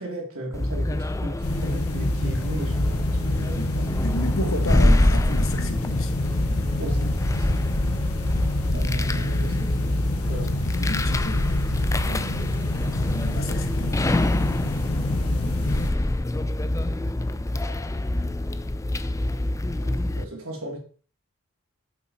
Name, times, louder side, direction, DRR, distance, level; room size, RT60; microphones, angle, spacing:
voice 1, 0.0-3.9 6.8-7.6 8.7-9.7 10.2-10.6 19.8-20.8, right 1 dB, 70° right, 3.2 m, -35 dB
sound 1, 0.5-20.2, left 1 dB, 15° left, 0.4 m, -25 dB
sound 2, 1.4-15.9, left 1 dB, 85° left, 1.5 m, -30 dB
voice 2, 3.5-6.1 10.8-11.4 11.9-12.7 13.0-13.9, left 1 dB, 65° left, 1.5 m, -32 dB
8.7 x 7.5 x 4.3 m
head